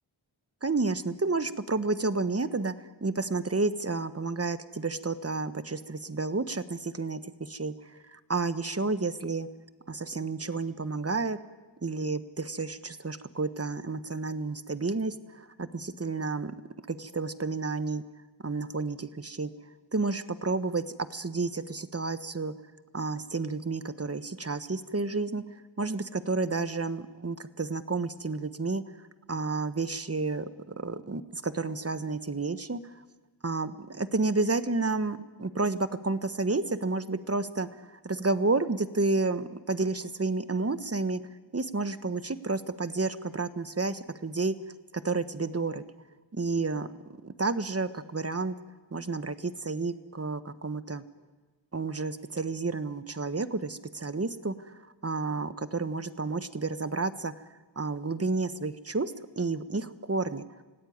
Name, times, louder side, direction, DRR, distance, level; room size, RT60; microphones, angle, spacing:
voice 1, 0.6-9.5 9.9-11.4 11.8-16.5 16.9-18.0 18.4-19.5 19.9-20.8 21.1-22.5 22.9-28.8 29.3-32.9 33.4-41.2 41.5-44.5 44.9-45.8 46.3-46.9 47.2-48.5 48.9-51.0 51.7-57.4 57.7-60.4, right 3 dB, 30° right, 12 dB, 1.3 m, -31 dB
25.5 x 17.0 x 9.6 m, 1.3 s
wide cardioid pair, 55°, 46 cm